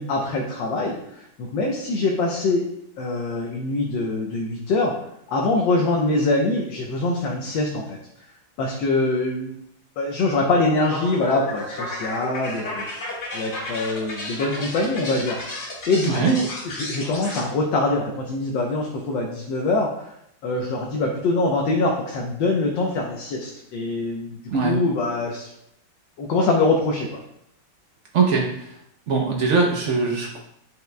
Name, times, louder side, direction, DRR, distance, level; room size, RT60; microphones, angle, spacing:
voice 1, 0.0-2.6 3.0-4.9 5.3-8.0 8.6-9.6 10.0-13.1 13.3-15.4 15.9-20.1 20.4-25.5 26.2-27.2, left 2 dB, 70° left, -1 dB, 1.4 m, -24 dB
sound 1, 10.5-17.4, left 1 dB, 55° left, 2.3 m, -33 dB
voice 2, 28.1-28.5 29.1-30.4, right 4 dB, 80° right, 0 dB, 0.6 m, -21 dB
9.0 x 5.7 x 2.2 m, 0.76 s
omnidirectional pair, 2.2 m